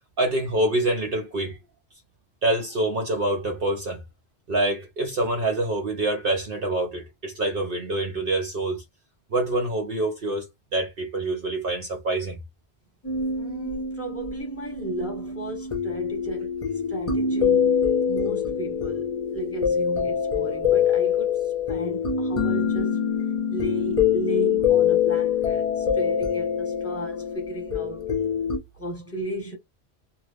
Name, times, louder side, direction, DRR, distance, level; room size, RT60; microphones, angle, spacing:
voice 1, 0.2-1.6 2.4-4.0 4.5-8.8 9.3-10.5 10.7-12.4, right 2 dB, 60° right, 0.9 m, -26 dB
sound 1, 13.0-28.6, left 7 dB, 35° left, 0.8 m, -25 dB
voice 2, 13.3-23.1 23.5-28.1 28.7-29.6, right 1 dB, 15° left, 1.1 m, -35 dB
2.6 x 2.5 x 3.3 m
omnidirectional pair, 1.1 m